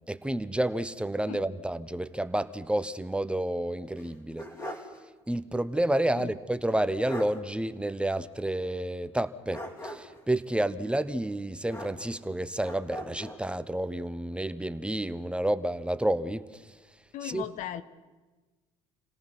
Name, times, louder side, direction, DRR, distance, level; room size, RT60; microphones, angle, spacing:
voice 1, 0.1-4.5 5.3-16.6 17.2-17.4, right 1 dB, 5° right, 14 dB, 1.0 m, -30 dB
sound 1, 4.0-5.0 5.3-5.4 6.7-6.8 7.1-7.4 9.5-10.2 11.7-12.3 12.6-13.4, equal, 20° left, 4.7 m, -40 dB
voice 2, 17.1-17.8, left 11 dB, 60° left, 13 dB, 1.2 m, -37 dB
28.5 x 18.0 x 6.1 m, 1.3 s
hypercardioid pair, 65°, 14 cm